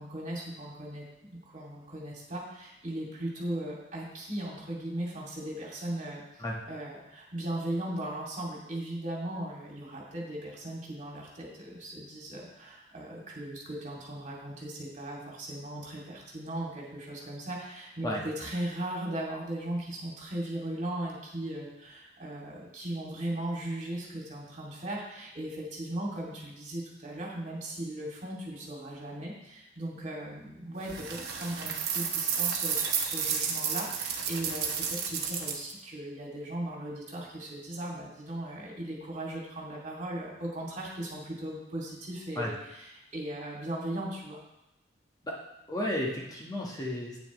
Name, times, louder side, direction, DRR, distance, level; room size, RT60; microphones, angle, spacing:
voice 1, 0.0-44.4, right 1 dB, 45° right, -3 dB, 2.5 m, -38 dB
sound 1, 30.8-35.7, right 7 dB, 65° right, 1.2 m, -31 dB
voice 2, 45.7-47.2, left 1 dB, 20° left, -3 dB, 1.3 m, -33 dB
9.5 x 8.8 x 3.1 m, 0.88 s
head